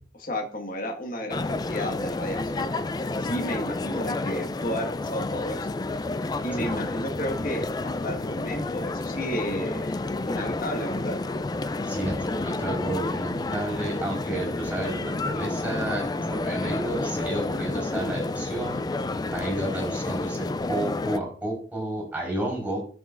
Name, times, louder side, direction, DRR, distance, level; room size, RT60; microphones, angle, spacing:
voice 1, 0.1-2.7 3.2-5.7 6.4-9.9 10.3-11.2, equal, 55° left, 2 dB, 1.6 m, -32 dB
sound 1, 1.3-21.2, left 2 dB, 25° left, 0.4 m, -30 dB
voice 2, 11.9-18.8 19.3-22.8, right 1 dB, 10° right, -3 dB, 4.1 m, -31 dB
12.0 x 6.1 x 2.5 m, 0.42 s
head